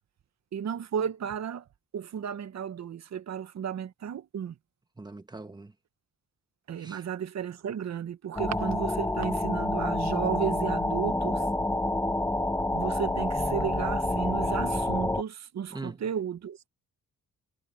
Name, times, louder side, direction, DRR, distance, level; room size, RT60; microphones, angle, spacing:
voice 1, 0.5-1.6 1.9-4.5 6.7-11.5 12.7-16.6, right 8 dB, 55° right, 1.3 m, -33 dB
voice 2, 5.0-5.7 6.8-7.0 15.7-16.0, right 2 dB, 15° right, 1.6 m, -42 dB
sound 1, 8.4-15.2, left 1 dB, 10° left, 1.0 m, -28 dB
cardioid pair, 115°, 32 cm